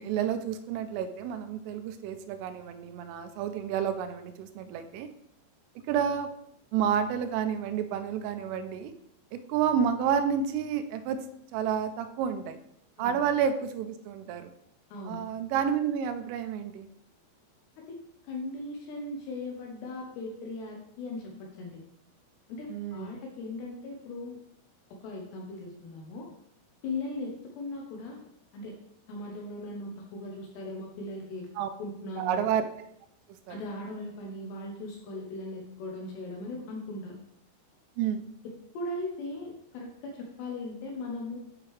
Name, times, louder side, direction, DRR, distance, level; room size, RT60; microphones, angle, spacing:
voice 1, 0.0-5.1 5.9-6.3 6.7-8.9 9.3-11.3 11.5-12.6 13.0-14.5 15.1-16.9 22.7-23.2 31.6-31.7 32.2-32.6 33.5-33.6 38.0-38.2, right 8 dB, 85° right, 9 dB, 3.1 m, -30 dB
voice 2, 14.9-15.2 17.8-18.0 18.2-21.8 22.5-24.4 25.0-26.3 26.8-28.2 28.5-28.8 29.1-31.5 31.8-32.4 33.5-37.2 38.4-41.4, left 2 dB, 75° left, 0 dB, 2.7 m, -38 dB
8.9 x 5.7 x 3.2 m, 0.73 s
omnidirectional pair, 5.7 m